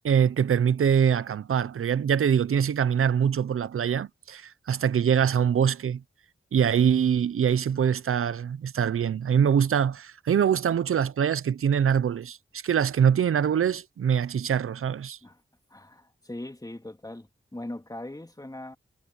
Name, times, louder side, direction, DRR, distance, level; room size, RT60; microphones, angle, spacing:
voice 1, 0.0-6.0 6.5-12.4 12.6-15.2, right 8 dB, 85° right, 0.7 m, -24 dB
voice 2, 15.7-18.8, left 1 dB, 15° left, 2.7 m, -40 dB
cardioid pair, 45°, 21 cm